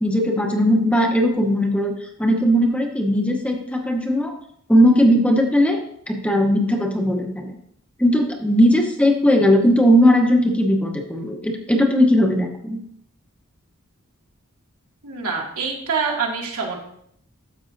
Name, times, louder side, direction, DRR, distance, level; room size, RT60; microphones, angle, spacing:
voice 1, 0.0-4.3 4.7-5.8 6.1-7.6 8.0-12.8, equal, 5° left, 1 dB, 1.0 m, -18 dB
voice 2, 15.0-16.8, right 5 dB, 90° right, -2 dB, 2.3 m, -25 dB
12.5 x 7.0 x 2.7 m, 0.68 s
head